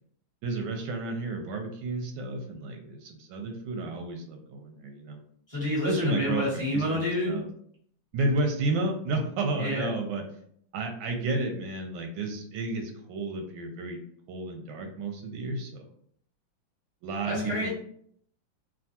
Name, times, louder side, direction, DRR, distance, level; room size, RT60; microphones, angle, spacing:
voice 1, 0.4-5.2 5.8-7.5 8.1-10.2 10.7-14.0 14.3-15.9 17.0-17.7, right 2 dB, 90° right, 4 dB, 1.4 m, -31 dB
voice 2, 5.5-7.4 9.6-9.9 17.2-17.7, left 1 dB, 30° left, -8 dB, 0.6 m, -28 dB
3.4 x 2.2 x 2.7 m, 0.65 s
omnidirectional pair, 2.1 m